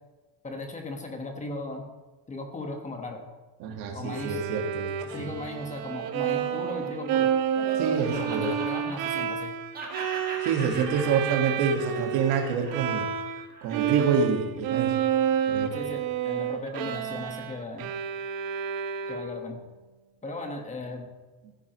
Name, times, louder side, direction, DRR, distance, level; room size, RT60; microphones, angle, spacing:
voice 1, 0.4-1.9 2.3-3.2 3.9-4.4 5.1-7.3 8.1-9.5 15.7-17.9 19.1-19.6 20.2-21.1, left 2 dB, 20° left, 3 dB, 1.4 m, -37 dB
voice 2, 3.6-4.9 5.2-5.3 7.8-8.5 10.4-13.1 13.6-15.0 15.5-15.7, right 6 dB, 80° right, 4 dB, 1.8 m, -27 dB
Bowed string instrument, 4.1-13.5 13.7-19.5, right 9 dB, 65° right, 1.0 m, -30 dB
Laughter, 5.4-9.5 9.7-14.2, right 3 dB, 25° right, 1.8 m, -40 dB
15.0 x 10.0 x 3.1 m, 1.3 s
cardioid pair, 160°, 37 cm